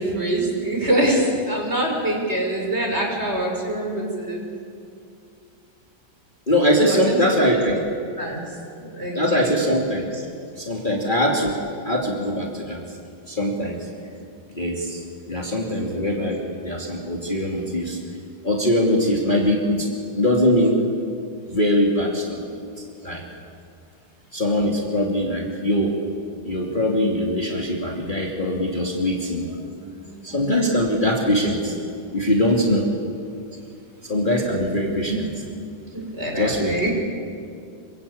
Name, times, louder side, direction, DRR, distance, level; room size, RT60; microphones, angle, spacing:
voice 1, 0.0-4.4 6.8-7.6 8.2-8.4 8.8-9.6 29.8-30.4 35.9-36.9, right 1 dB, 30° right, 0 dB, 5.5 m, -25 dB
voice 2, 6.5-7.8 9.1-10.3 10.6-12.8 13.3-13.8 14.5-15.0 15.3-18.0 18.4-19.9 20.1-20.8 21.5-22.6 23.0-23.2 24.3-26.0 26.4-29.5 30.2-31.8 32.1-32.9 34.0-35.3 36.4-36.9, equal, 25° left, -2 dB, 2.9 m, -22 dB
27.5 x 24.5 x 8.6 m, 2.4 s
omnidirectional pair, 2.3 m